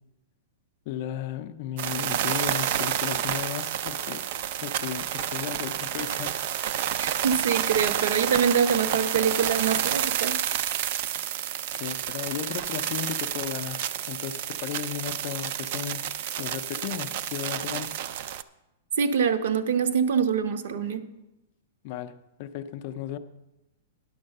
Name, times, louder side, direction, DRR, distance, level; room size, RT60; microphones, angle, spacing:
voice 1, 0.9-4.3 4.6-6.4 11.8-16.1 16.4-18.0 21.8-23.2, left 10 dB, 35° left, 0.4 m, -35 dB
sound 1, 1.8-18.4, right 11 dB, 40° right, 0.3 m, -29 dB
voice 2, 7.0-10.4 19.0-21.1, right 7 dB, 55° right, 0.7 m, -25 dB
10.0 x 6.3 x 6.5 m
supercardioid pair, 175°, 0 cm